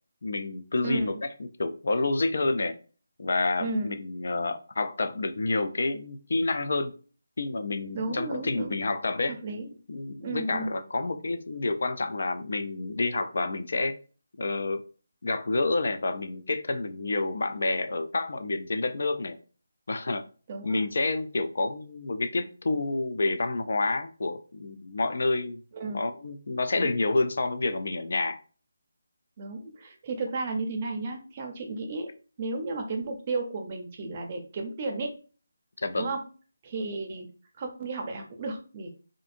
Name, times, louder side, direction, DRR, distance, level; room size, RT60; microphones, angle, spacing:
voice 1, 0.2-2.8 3.2-6.9 7.4-9.3 9.9-13.9 14.4-14.8 15.2-19.4 19.9-20.2 20.6-25.6 25.9-28.4 35.8-36.1, left 3 dB, 60° left, 9 dB, 0.3 m, -29 dB
voice 2, 3.6-3.9 7.9-8.8 9.3-9.7 10.2-10.7 20.5-20.9 25.7-26.0 26.7-27.0 29.4-32.1 32.4-35.1 36.0-36.2 36.6-37.3 37.6-38.9, right 3 dB, 30° right, 3 dB, 0.5 m, -33 dB
2.6 x 2.5 x 2.5 m, 0.38 s
figure-of-eight pair, 170°, 0 cm